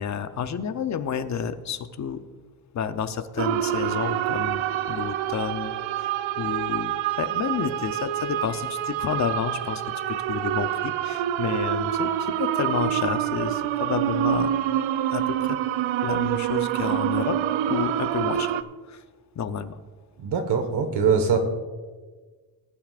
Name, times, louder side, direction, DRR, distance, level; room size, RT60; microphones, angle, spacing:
voice 1, 0.0-2.2 2.7-4.6 4.9-6.1 6.4-6.9 7.2-9.8 10.1-14.5 15.1-15.6 16.0-17.4 17.7-18.6 18.9-19.0 19.4-19.8, left 7 dB, 40° left, 10 dB, 0.7 m, -30 dB
sound 1, 3.4-18.6, right 11 dB, 80° right, 0.6 m, -26 dB
voice 2, 20.2-21.4, right 6 dB, 60° right, 6 dB, 1.5 m, -22 dB
20.0 x 10.5 x 2.5 m, 1.4 s
cardioid pair, 135°, 46 cm